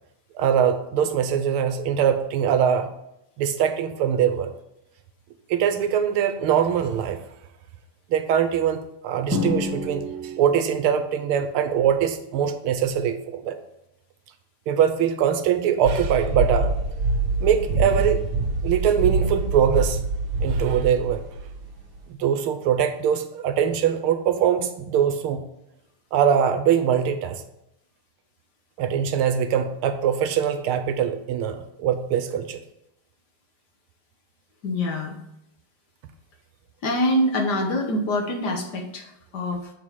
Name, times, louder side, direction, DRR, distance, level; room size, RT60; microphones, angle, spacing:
voice 1, 0.4-2.9 3.4-4.5 5.5-7.2 8.1-13.5 14.7-16.8 17.4-18.2 18.6-20.0 20.4-21.2 22.1-25.4 26.1-27.4 28.8-32.6, right 8 dB, 85° right, 7 dB, 1.6 m, -22 dB
Drum, 9.3-11.0, left 2 dB, 15° left, 0.5 m, -29 dB
sound 1, 15.8-22.0, right 3 dB, 65° right, 1.6 m, -25 dB
voice 2, 34.6-35.2 36.8-39.7, left 1 dB, 55° left, 2 dB, 1.4 m, -25 dB
7.0 x 4.7 x 5.6 m, 0.82 s
omnidirectional pair, 2.4 m